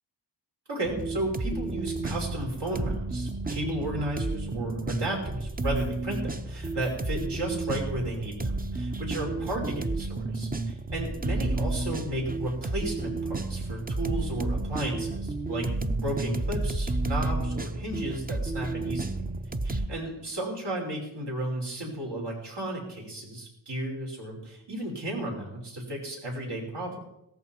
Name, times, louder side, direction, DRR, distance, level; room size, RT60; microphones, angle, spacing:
voice 1, 0.7-15.7 16.0-19.2 19.6-27.0, right 1 dB, 70° right, -1 dB, 5.5 m, -34 dB
sound 1, 0.8-19.9, right 2 dB, 20° right, 0.7 m, -31 dB
17.0 x 14.0 x 4.6 m, 0.81 s
wide cardioid pair, 130°, 43 cm